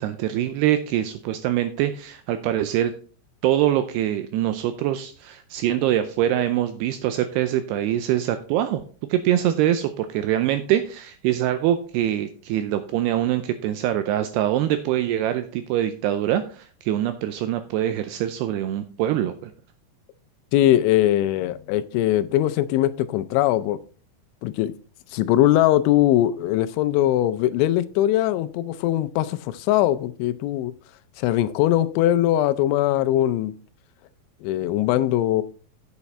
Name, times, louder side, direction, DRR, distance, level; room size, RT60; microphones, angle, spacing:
voice 1, 0.0-2.9 3.4-8.8 9.1-19.5, right 12 dB, 85° right, 2.4 m, -24 dB
voice 2, 20.5-23.8 24.4-24.7 25.1-30.7 31.2-33.5 34.4-35.4, left 13 dB, 85° left, 3.0 m, -21 dB
8.9 x 7.1 x 4.2 m
omnidirectional pair, 5.3 m